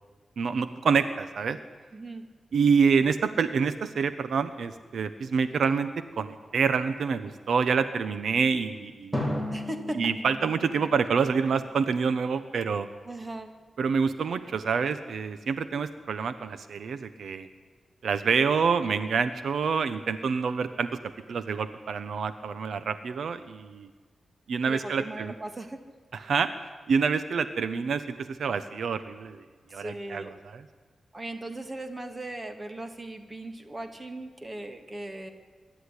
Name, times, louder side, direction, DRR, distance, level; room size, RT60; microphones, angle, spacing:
voice 1, 0.4-1.6 2.5-5.9 6.2-9.3 10.0-12.9 13.8-17.5 18.0-20.9 21.3-23.9 24.5-25.3 26.1-26.5 26.9-29.4 29.7-30.6, right 5 dB, 80° right, 11 dB, 1.0 m, -27 dB
voice 2, 1.9-2.3 9.5-10.1 13.1-13.6 24.6-25.8 29.7-30.3 31.1-35.3, right 1 dB, 25° right, 6 dB, 2.1 m, -38 dB
Drum, 9.1-12.0, left 1 dB, 10° right, 4.9 m, -35 dB
25.5 x 12.5 x 9.9 m, 1.4 s
wide cardioid pair, 135°, 0 cm